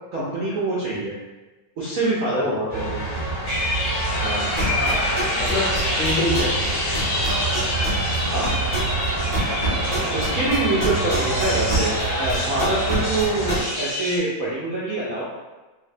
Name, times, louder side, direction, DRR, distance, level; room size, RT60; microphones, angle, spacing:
voice 1, 0.1-1.1 1.8-3.0 4.2-4.5 8.3-8.5 10.0-15.2, right 2 dB, 70° right, -8 dB, 0.8 m, -25 dB
sound 1, 2.7-13.6, right 2 dB, 15° left, 1.0 m, -27 dB
sound 2, 3.4-14.2, left 1 dB, 45° left, 0.5 m, -28 dB
voice 2, 4.5-5.0 5.4-5.6 5.9-7.0 9.5-9.9, left 2 dB, 65° left, -8 dB, 0.9 m, -27 dB
sound 3, 4.6-6.7 6.9-12.0 12.3-13.5, right 2 dB, 25° right, 0.6 m, -28 dB
3.2 x 2.6 x 2.5 m, 1.2 s
omnidirectional pair, 2.1 m